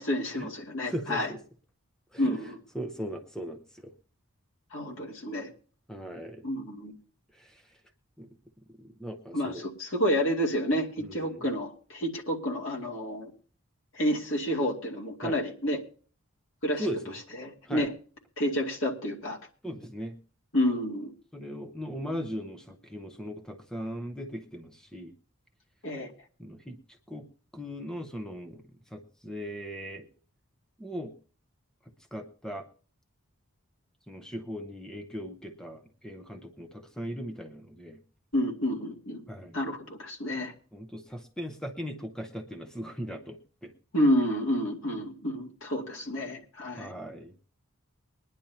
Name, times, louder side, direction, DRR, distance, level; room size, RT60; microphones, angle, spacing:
voice 1, 0.0-1.3 2.2-2.6 4.7-5.5 6.4-6.9 9.3-13.3 13.9-15.8 16.6-16.9 17.4-17.9 18.4-19.4 20.5-21.1 25.8-26.1 38.3-39.2 39.5-40.5 43.9-46.9, equal, 60° left, -1 dB, 2.5 m, -29 dB
voice 2, 0.8-1.4 2.1-2.4 2.7-3.9 5.9-6.5 7.3-7.8 8.2-8.3 8.8-9.7 11.0-11.5 15.2-15.4 16.8-17.2 17.7-17.9 19.6-20.2 21.3-25.1 26.4-26.8 27.1-27.3 27.5-28.6 28.9-30.1 30.8-31.1 32.1-32.7 34.1-38.0 39.3-39.6 40.7-43.7 46.7-47.3, equal, 5° left, 6 dB, 0.7 m, -38 dB
22.0 x 10.5 x 2.8 m, 0.40 s
head